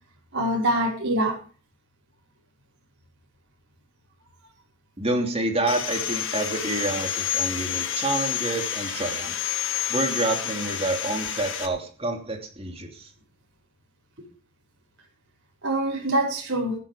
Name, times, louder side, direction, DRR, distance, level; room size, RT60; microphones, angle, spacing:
voice 1, 0.3-1.4 15.6-16.8, right 1 dB, 50° right, -4 dB, 5.6 m, -24 dB
voice 2, 5.0-9.5 9.9-13.1, right 2 dB, 25° right, 4 dB, 3.0 m, -28 dB
Sawing, 5.7-11.7, left 9 dB, 60° left, 2.1 m, -29 dB
16.0 x 12.0 x 5.1 m, 0.39 s
head